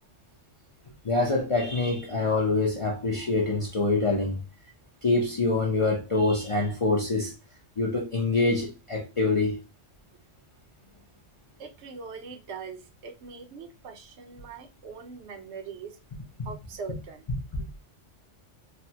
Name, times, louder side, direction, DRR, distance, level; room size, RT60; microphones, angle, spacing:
voice 1, 1.0-4.4 5.0-7.3 7.8-9.6 17.5-17.7, left 3 dB, 40° left, 0.4 m, -25 dB
voice 2, 11.6-16.0 16.4-17.2, right 5 dB, 70° right, 0.9 m, -41 dB
3.3 x 2.1 x 2.8 m
omnidirectional pair, 1.2 m